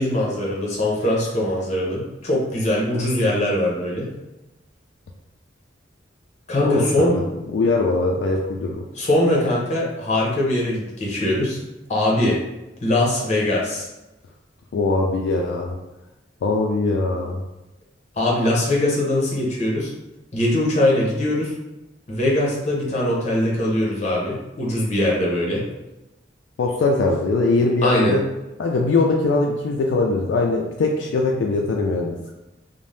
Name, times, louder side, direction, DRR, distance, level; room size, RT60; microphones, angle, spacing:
voice 1, 0.0-4.1 6.5-7.2 8.9-11.6 11.9-12.4 12.8-13.9 18.2-19.9 20.3-21.5 22.1-25.6 27.8-28.1, left 1 dB, 40° left, -4 dB, 0.8 m, -21 dB
voice 2, 6.6-7.2 7.5-8.8 14.7-15.8 16.4-17.4 26.6-28.2 28.6-32.3, left 3 dB, 70° left, 0 dB, 0.3 m, -21 dB
2.6 x 2.0 x 3.2 m, 0.98 s
head